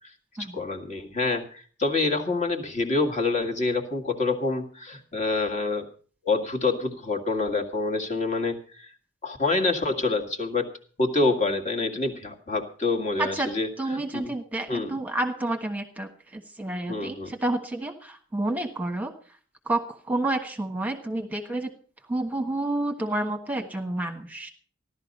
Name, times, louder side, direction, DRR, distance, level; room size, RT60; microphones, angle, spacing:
voice 1, 0.4-5.9 6.3-8.9 9.2-10.7 11.0-14.3 14.7-15.0 16.9-17.3, left 3 dB, 40° left, 3 dB, 1.9 m, -27 dB
voice 2, 13.2-13.5 13.8-19.1 19.7-21.7 22.1-24.5, right 2 dB, 10° right, 5 dB, 1.3 m, -29 dB
15.5 x 12.0 x 5.3 m, 0.43 s
head